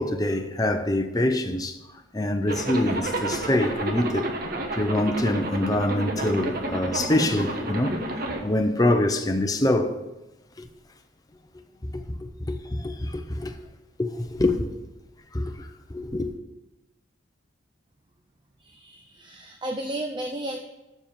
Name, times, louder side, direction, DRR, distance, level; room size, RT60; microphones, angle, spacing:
voice 1, 0.0-1.8 2.1-4.3 4.7-8.0 8.4-9.9 10.6-10.7 11.8-13.5 14.0-14.7 15.3-16.3, left 1 dB, 20° left, 0.6 m, -25 dB
Zipper (clothing), 2.5-8.4, right 2 dB, 50° right, 1.3 m, -30 dB
voice 2, 18.6-20.6, right 1 dB, 25° right, 0.6 m, -33 dB
7.4 x 6.8 x 7.4 m
head